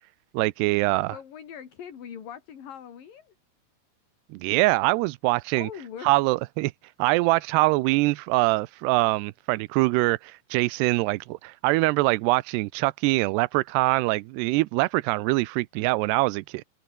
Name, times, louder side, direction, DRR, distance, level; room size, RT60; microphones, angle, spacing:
voice 1, 0.3-1.1 4.3-5.7 6.0-6.7 7.0-16.6, right 21 dB, 90° right, 2.7 m, -23 dB
voice 2, 1.1-3.3 5.5-6.1, left 8 dB, 60° left, 4.5 m, -41 dB
omnidirectional pair, 4.8 m